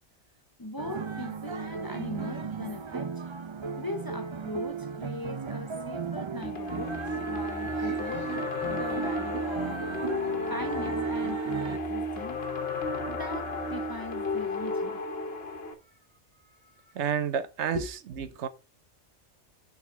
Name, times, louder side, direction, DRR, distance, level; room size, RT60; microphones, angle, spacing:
voice 1, 0.6-3.2 3.8-6.9 7.3-9.8 10.2-12.4 13.1-15.0 15.8-16.0 16.4-17.0 17.7-17.9, left 1 dB, 25° left, 0.7 m, -39 dB
sound 1, 0.8-11.8, right 5 dB, 45° right, 0.4 m, -37 dB
sound 2, 6.4-15.7, left 1 dB, 60° left, 1.4 m, -32 dB
voice 2, 16.9-18.5, right 8 dB, 80° right, 1.0 m, -30 dB
7.0 x 3.9 x 6.0 m
omnidirectional pair, 1.2 m